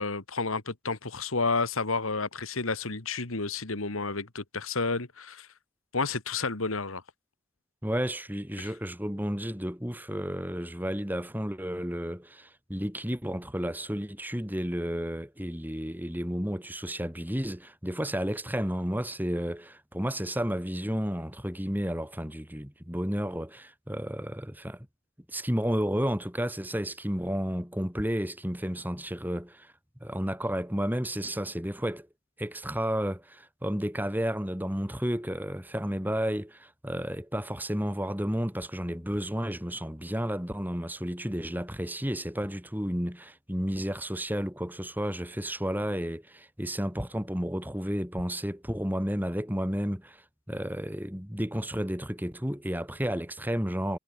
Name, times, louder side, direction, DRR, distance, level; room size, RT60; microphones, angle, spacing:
voice 1, 0.0-5.5 5.9-7.0 8.6-8.7, left 3 dB, 75° left, 2.2 m, -31 dB
voice 2, 7.8-24.9 25.3-29.7 30.0-32.1 32.4-54.0, equal, 10° right, 3.7 m, -32 dB
head